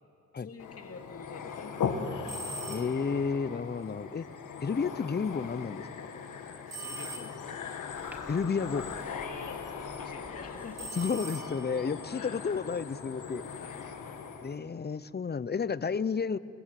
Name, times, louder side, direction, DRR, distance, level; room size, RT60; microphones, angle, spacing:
voice 1, 0.4-2.0 6.6-7.5 9.0-11.1 12.1-12.5 13.5-14.0, left 4 dB, 50° left, 4 dB, 2.3 m, -48 dB
sound 1, 0.6-14.6, left 6 dB, 85° left, 1.6 m, -39 dB
sound 2, 2.2-3.2 6.7-7.7 10.7-11.9, right 2 dB, 55° right, 2.9 m, -42 dB
voice 2, 2.7-4.3 4.6-5.9 8.3-8.9 10.9-13.4 14.4-16.4, left 5 dB, 35° left, 17 dB, 0.7 m, -31 dB
sound 3, 7.9-10.9, right 1 dB, 5° right, 2.3 m, -53 dB
22.0 x 21.5 x 7.7 m, 2.8 s
cardioid pair, 50°, 30 cm